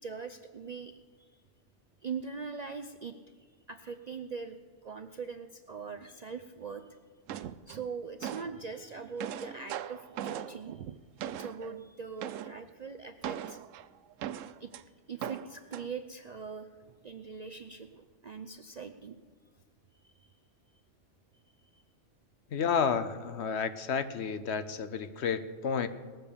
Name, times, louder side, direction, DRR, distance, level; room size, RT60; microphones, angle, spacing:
voice 1, 0.0-1.3 2.0-6.9 7.7-10.8 11.3-13.6 14.6-14.7 15.1-19.2 20.0-20.3 21.7-21.8, right 5 dB, 55° right, 7 dB, 0.5 m, -42 dB
sound 1, 7.3-8.6 9.0-11.8 12.2-12.6 13.2-14.8 15.2-15.9, right 10 dB, 90° right, 0.9 m, -39 dB
voice 2, 22.5-25.9, left 6 dB, 65° left, 12 dB, 1.0 m, -31 dB
19.5 x 7.1 x 6.8 m, 1.5 s
omnidirectional pair, 1.3 m